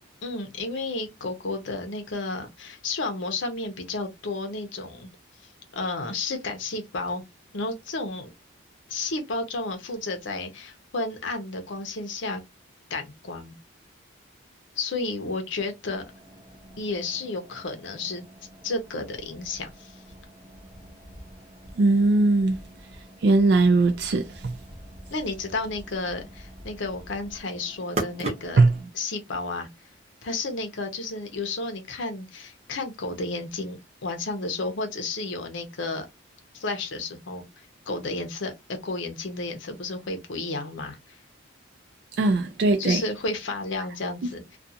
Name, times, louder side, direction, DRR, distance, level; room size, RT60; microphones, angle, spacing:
voice 1, 0.2-5.1 5.7-7.2 7.5-8.3 8.9-12.4 12.9-13.6 14.8-16.0 16.8-18.2 18.6-20.0 25.1-28.6 28.9-29.7 30.2-36.1 36.5-37.4 37.9-41.0 42.8-44.4, left 3 dB, 75° left, 0.7 m, -32 dB
sound 1, 16.0-28.8, right 2 dB, 35° right, 0.8 m, -41 dB
voice 2, 21.8-22.6 23.2-24.5 28.6-28.7 42.2-43.0, right 3 dB, 60° right, 0.3 m, -20 dB
2.4 x 2.3 x 2.7 m
head